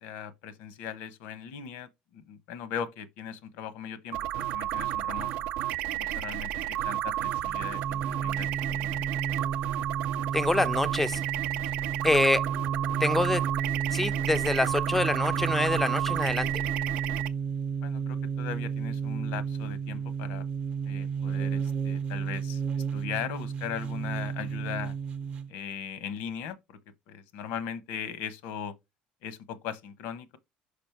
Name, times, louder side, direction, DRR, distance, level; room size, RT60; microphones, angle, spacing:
voice 1, 0.0-5.5 6.0-9.0 17.8-20.5 20.9-24.9 25.5-26.8 27.1-28.7 29.2-30.4, left 8 dB, 85° left, 0.9 m, -39 dB
sound 1, 4.1-17.3, right 14 dB, 80° right, 0.5 m, -32 dB
sound 2, 7.2-25.5, right 6 dB, 40° right, 0.7 m, -32 dB
voice 2, 10.3-11.2 12.0-12.4 13.0-13.4 13.9-16.6, left 2 dB, 5° left, 0.3 m, -26 dB
5.1 x 5.1 x 4.5 m
cardioid pair, 145°, 3 cm